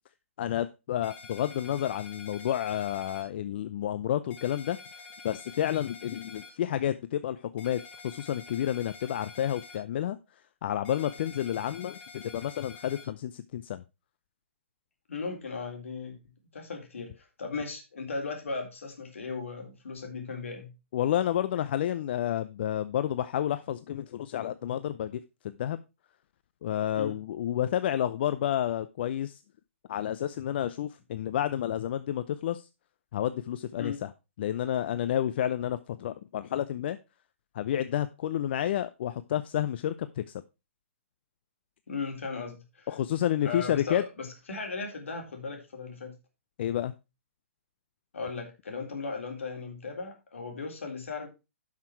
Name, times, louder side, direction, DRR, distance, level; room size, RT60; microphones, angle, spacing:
voice 1, 0.4-4.8 5.2-10.2 10.6-13.8 20.9-25.8 26.6-29.4 29.9-32.7 33.1-34.1 34.4-37.0 37.5-40.4 42.9-44.0 46.6-46.9, left 11 dB, 50° left, 12 dB, 0.6 m, -30 dB
sound 1, 1.0-3.2 4.3-6.5 7.6-9.8 10.8-13.1, left 4 dB, 25° left, 4.4 m, -48 dB
voice 2, 15.1-16.2 16.5-20.7 26.9-27.2 33.8-34.0 41.9-42.9 43.4-46.1 48.1-51.3, left 4 dB, 70° left, 2 dB, 3.5 m, -37 dB
11.0 x 5.9 x 4.5 m, 0.27 s
figure-of-eight pair, 125°, 7 cm